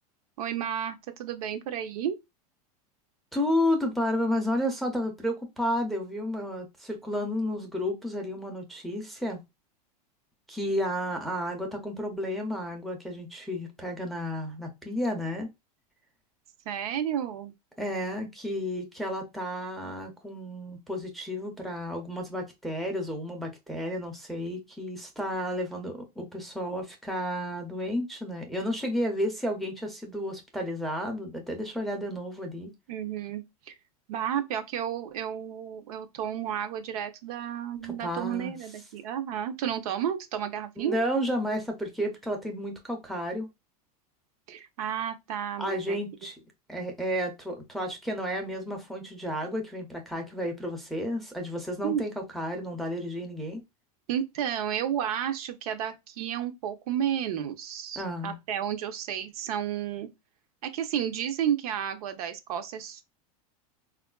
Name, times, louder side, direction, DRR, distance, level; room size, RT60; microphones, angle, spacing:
voice 1, 0.4-2.2 16.7-17.5 32.9-33.7 34.1-41.0 44.5-46.0 51.8-52.0 54.1-60.1 60.6-63.0, right 9 dB, 70° right, 0.6 m, -32 dB
voice 2, 3.3-9.4 10.5-15.5 17.8-32.7 37.8-38.6 40.8-43.5 45.6-46.3 46.7-53.6 58.0-58.4, equal, ahead, 0.5 m, -32 dB
3.5 x 2.4 x 2.2 m
supercardioid pair, 140°, 19 cm